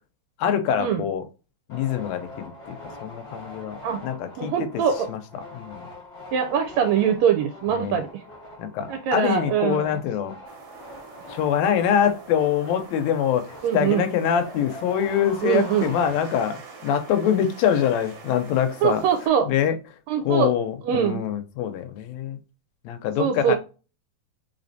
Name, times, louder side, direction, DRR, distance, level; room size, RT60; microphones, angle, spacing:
voice 1, 0.4-1.2 1.7-4.5 5.1-5.8 7.7-8.0 8.6-10.3 11.3-19.0 19.5-19.7 20.2-22.4 22.8-23.6, left 8 dB, 75° left, 1.8 m, -24 dB
sound 1, 1.7-16.7, left 2 dB, 30° left, 1.0 m, -43 dB
voice 2, 4.4-5.1 6.3-8.2 8.9-10.0 13.6-14.0 15.4-15.9 18.8-19.5 20.1-20.5 20.8-21.2 23.2-23.6, right 8 dB, 80° right, 1.7 m, -23 dB
sound 2, 10.5-19.3, right 5 dB, 60° right, 1.4 m, -45 dB
4.2 x 3.6 x 2.6 m
omnidirectional pair, 3.3 m